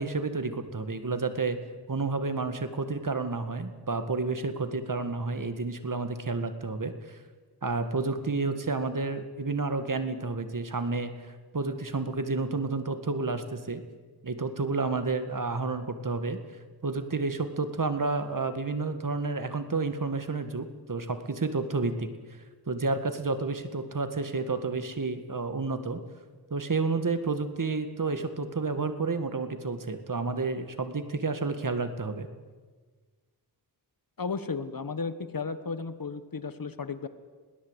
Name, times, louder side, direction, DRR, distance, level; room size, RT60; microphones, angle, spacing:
voice 1, 0.0-1.6 1.9-7.2 7.6-13.8 14.2-16.4 16.8-22.1 22.7-26.0 26.5-32.3, right 3 dB, 50° right, 9 dB, 1.9 m, -30 dB
voice 2, 34.2-37.1, left 4 dB, 55° left, 12 dB, 1.5 m, -34 dB
21.5 x 17.5 x 8.2 m, 1.4 s
wide cardioid pair, 65°, 42 cm